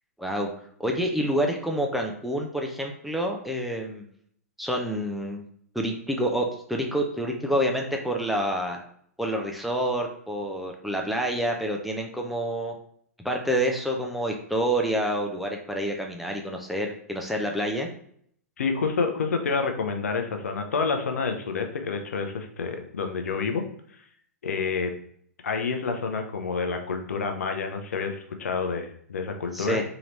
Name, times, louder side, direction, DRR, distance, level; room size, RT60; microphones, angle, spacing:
voice 1, 0.2-0.5 0.8-4.0 4.6-5.4 5.7-8.8 9.2-12.8 13.2-17.9 29.5-29.8, equal, ahead, 1 dB, 0.5 m, -28 dB
voice 2, 18.6-23.6 24.4-24.9 25.4-29.8, left 5 dB, 70° left, 5 dB, 0.6 m, -28 dB
3.8 x 2.9 x 3.1 m, 0.64 s
figure-of-eight pair, 110°, 8 cm